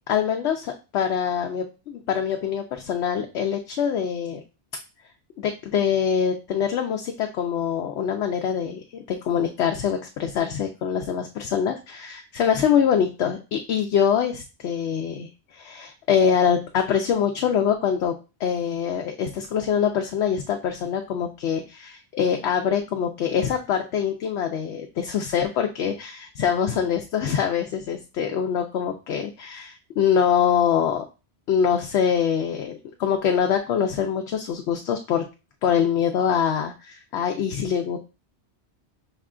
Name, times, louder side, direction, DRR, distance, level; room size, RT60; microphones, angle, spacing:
voice 1, 0.1-4.4 5.4-31.1 31.5-35.2 35.6-38.0, left 8 dB, 80° left, 4 dB, 0.8 m, -24 dB
5.5 x 2.3 x 3.6 m, 0.30 s
omnidirectional pair, 1.1 m